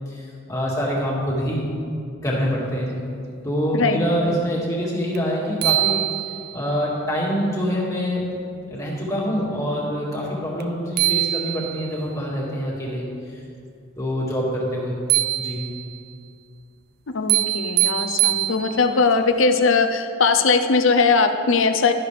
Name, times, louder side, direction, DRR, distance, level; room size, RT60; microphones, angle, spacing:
voice 1, 0.1-1.6 2.2-3.0 3.4-6.0 6.5-8.3 8.7-13.0 13.3-13.4 14.0-15.0 15.4-15.6, equal, 15° left, -5 dB, 2.1 m, -25 dB
sound 1, 5.1-5.2 5.6-6.7 10.6-10.7 11.0-12.0 15.1-16.0 17.3-19.0, right 15 dB, 50° right, 0.5 m, -23 dB
voice 2, 17.1-21.9, left 4 dB, 65° left, 7 dB, 0.7 m, -19 dB
12.0 x 10.5 x 3.4 m, 2.4 s
head